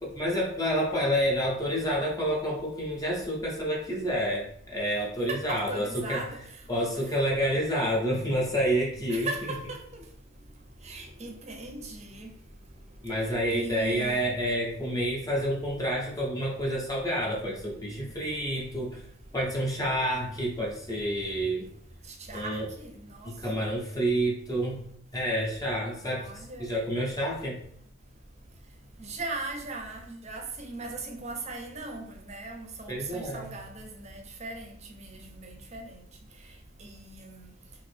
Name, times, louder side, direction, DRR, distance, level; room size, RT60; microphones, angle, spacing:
voice 1, 0.0-6.2 6.7-9.3 13.0-19.0 19.3-21.7 22.3-22.7 23.2-24.8 25.1-27.6 32.9-33.5, equal, 15° left, 0.5 m, -29 dB
voice 2, 5.3-6.4 9.1-10.0 10.8-12.3 13.5-14.2 22.3-23.6 26.2-26.7 29.0-36.0 36.8-37.5, right 2 dB, 35° right, 0.5 m, -38 dB
2.9 x 2.5 x 3.2 m
head